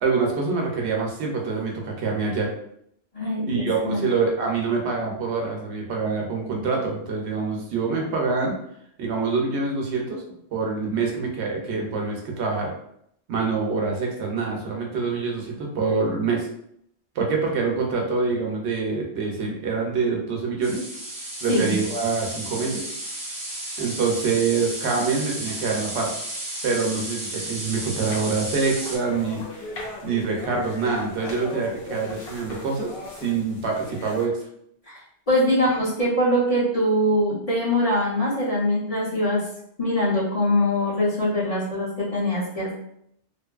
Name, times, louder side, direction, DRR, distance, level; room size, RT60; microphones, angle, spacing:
voice 1, 0.0-2.5 3.5-8.5 9.0-10.2 10.5-12.7 13.3-16.5 17.2-20.8 21.4-22.9 23.8-26.1 26.6-29.4 30.0-34.4, right 4 dB, 75° right, 0 dB, 0.9 m, -25 dB
voice 2, 3.1-4.0 21.5-21.7 34.9-35.0 35.3-39.4 39.8-42.7, left 1 dB, 35° left, -7 dB, 0.7 m, -23 dB
sound 1, 20.6-29.0, right 1 dB, 25° right, 0.5 m, -33 dB
sound 2, 28.1-34.3, left 2 dB, 65° left, 0.8 m, -38 dB
2.6 x 2.5 x 2.3 m, 0.71 s
omnidirectional pair, 1.2 m